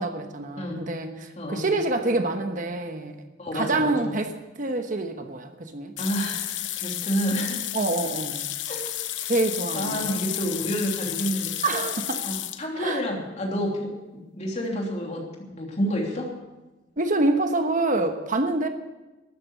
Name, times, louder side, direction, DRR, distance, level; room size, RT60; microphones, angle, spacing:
voice 1, 0.0-3.2 3.5-5.9 7.7-8.5 9.3-10.1 11.6-12.2 12.8-13.0 17.0-18.7, right 2 dB, 45° right, 6 dB, 1.1 m, -26 dB
voice 2, 0.6-0.9 1.4-1.7 3.4-4.2 6.0-7.6 8.7-8.9 9.2-9.3 9.7-11.5 12.2-16.4, equal, 40° left, 0 dB, 3.1 m, -29 dB
sound 1, 6.0-12.6, left 12 dB, 85° left, 0.9 m, -32 dB
13.0 x 9.5 x 8.5 m, 1.1 s
head